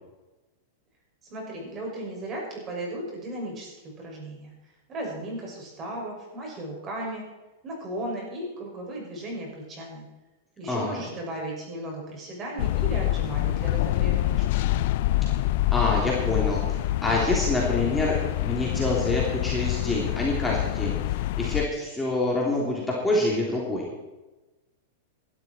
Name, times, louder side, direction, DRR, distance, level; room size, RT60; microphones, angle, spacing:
voice 1, 1.2-4.5 4.9-7.3 7.6-10.0 10.6-14.6, right 1 dB, 30° right, -1 dB, 6.4 m, -35 dB
voice 2, 10.7-11.0 15.2-15.3 15.7-23.9, left 2 dB, 10° left, -4 dB, 3.4 m, -27 dB
sound 1, 12.6-21.7, left 15 dB, 60° left, 0.4 m, -26 dB
17.0 x 12.5 x 4.5 m, 1.1 s
hypercardioid pair, 135°, 0 cm